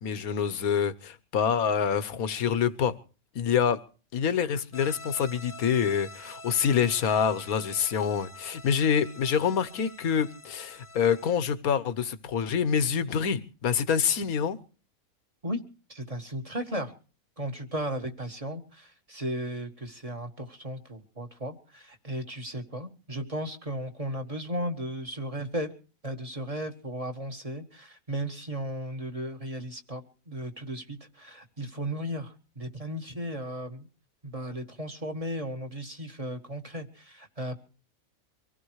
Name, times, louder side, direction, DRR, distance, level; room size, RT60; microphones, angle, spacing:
voice 1, 0.0-2.9 3.3-3.8 4.1-14.6, left 7 dB, 75° left, 1.5 m, -26 dB
sound 1, 4.7-11.3, left 2 dB, 15° left, 1.0 m, -47 dB
voice 2, 15.9-16.9 17.4-25.7 26.0-33.9 34.2-37.6, equal, 25° right, 1.7 m, -35 dB
24.5 x 16.0 x 3.2 m
omnidirectional pair, 1.5 m